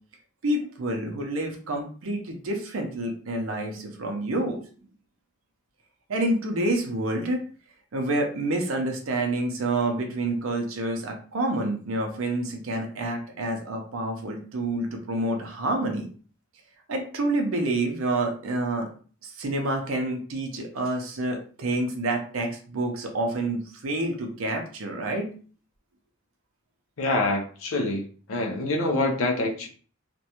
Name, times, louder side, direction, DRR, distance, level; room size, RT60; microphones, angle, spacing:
voice 1, 0.4-4.6 6.1-7.4 7.9-16.1 16.9-18.9 19.2-25.3, right 2 dB, 80° right, 0.6 m, -28 dB
voice 2, 27.0-29.7, left 2 dB, 85° left, 0.6 m, -26 dB
2.5 x 2.2 x 2.8 m
head